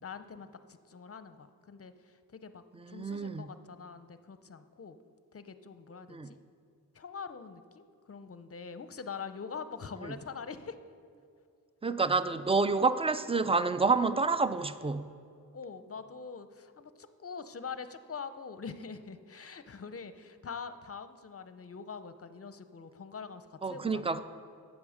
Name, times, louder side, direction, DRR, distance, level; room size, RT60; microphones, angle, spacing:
voice 1, 0.0-5.0 5.3-6.4 6.9-10.8 15.5-24.1, left 5 dB, 40° left, 11 dB, 0.6 m, -44 dB
voice 2, 2.9-3.5 6.1-6.3 11.8-15.1 23.6-24.2, right 4 dB, 15° right, 12 dB, 0.4 m, -28 dB
8.5 x 7.3 x 6.4 m, 2.4 s
wide cardioid pair, 50°, 37 cm